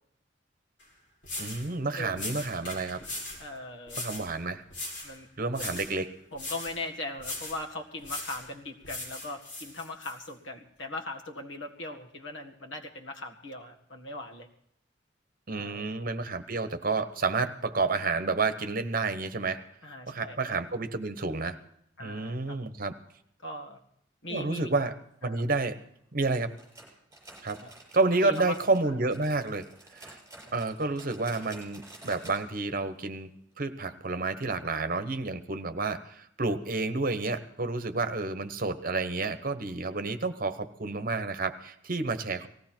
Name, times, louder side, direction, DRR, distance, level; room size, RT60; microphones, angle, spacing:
sound 1, 0.8-0.9 1.2-1.7 2.1-3.4 3.9-4.3 4.7-5.1 5.5-6.0 6.3-6.8 7.2-7.6 8.0-8.5 8.8-10.1, left 2 dB, 65° left, 5.3 m, -39 dB
voice 1, 1.4-3.0 4.0-4.6 5.4-6.1 15.5-19.6 20.1-21.6 22.0-22.9 24.3-24.9 25.2-25.8 26.1-26.5 27.4-27.6 27.9-29.7 29.9-30.2 30.5-33.3 33.6-42.5, right 3 dB, 50° right, 10 dB, 1.1 m, -30 dB
voice 2, 2.0-2.3 3.4-4.0 5.0-5.3 5.6-5.8 6.3-14.5 15.5-15.9 19.8-20.4 22.0-22.7 23.4-23.8 24.2-24.7 25.2-25.4 27.6-27.7 28.1-28.6, left 2 dB, 90° left, 3 dB, 1.9 m, -39 dB
sound 2, 26.6-28.8 29.1-32.4 32.7-32.8 33.2-33.3 33.9-34.0, right 2 dB, 15° right, 6.5 m, -50 dB
19.0 x 15.5 x 4.5 m, 0.71 s
head